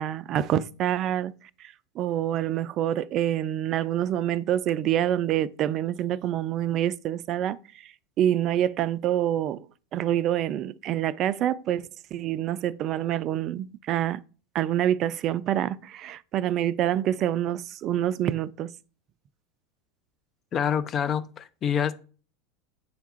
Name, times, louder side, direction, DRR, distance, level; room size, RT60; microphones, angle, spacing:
voice 1, 0.0-1.3 1.6-7.6 8.2-9.6 9.9-11.8 12.1-14.2 14.5-18.7, right 11 dB, 45° right, 0.4 m, -26 dB
voice 2, 20.5-21.9, left 8 dB, 35° left, 0.6 m, -26 dB
8.0 x 3.5 x 4.3 m
hypercardioid pair, 85°, 0 cm